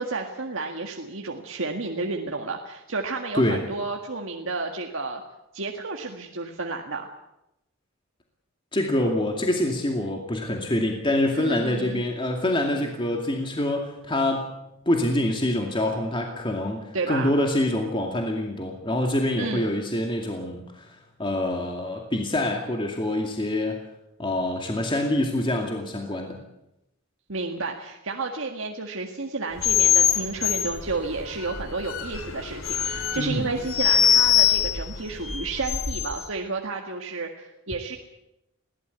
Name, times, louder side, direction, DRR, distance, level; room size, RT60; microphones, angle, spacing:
voice 1, 0.0-5.2 5.5-7.1 11.4-12.0 16.9-17.3 19.4-19.7 27.3-38.0, right 3 dB, 75° right, 2 dB, 1.8 m, -31 dB
voice 2, 8.7-14.5 14.9-23.8 24.2-26.4 33.2-33.5, left 1 dB, 25° left, 2 dB, 2.4 m, -26 dB
sound 1, 29.6-36.2, left 9 dB, 85° left, 2.5 m, -23 dB
22.0 x 16.5 x 8.2 m, 0.88 s
head